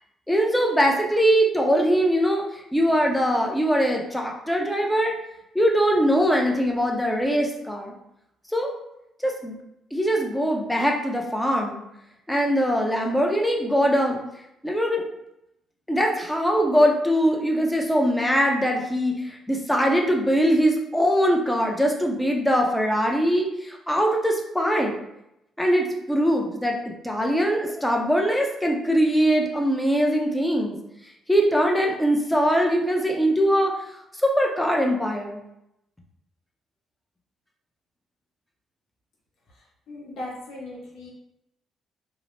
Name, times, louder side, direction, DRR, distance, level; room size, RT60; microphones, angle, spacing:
voice 1, 0.3-2.4 2.7-5.1 5.5-7.9 8.5-8.7 9.2-9.6 9.9-11.8 12.3-14.2 14.6-15.0 15.9-24.9 25.6-26.8 27.0-30.8 31.3-33.8 34.2-35.4, equal, 5° left, 0 dB, 0.6 m, -22 dB
voice 2, 39.9-41.1, left 1 dB, 65° left, -4 dB, 0.9 m, -37 dB
2.7 x 2.0 x 3.1 m, 0.82 s
cardioid pair, 90°, 0 cm